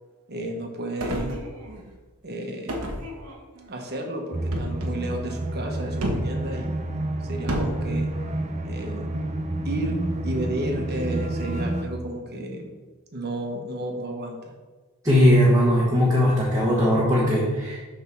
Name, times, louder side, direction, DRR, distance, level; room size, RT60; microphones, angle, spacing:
voice 1, 0.3-1.4 2.2-2.9 3.7-8.1 8.6-9.1 9.6-10.0 10.2-12.7 13.1-14.5, right 1 dB, 45° right, 2 dB, 1.2 m, -32 dB
sound 1, 1.0-1.9 2.7-3.7 4.5-4.9 6.0-6.4 7.5-7.8, equal, 75° right, 1.1 m, -30 dB
sound 2, 4.3-11.8, right 1 dB, 30° right, 0.6 m, -29 dB
voice 2, 15.0-17.8, equal, 15° right, -6 dB, 1.3 m, -19 dB
7.1 x 3.7 x 6.0 m, 1.3 s
head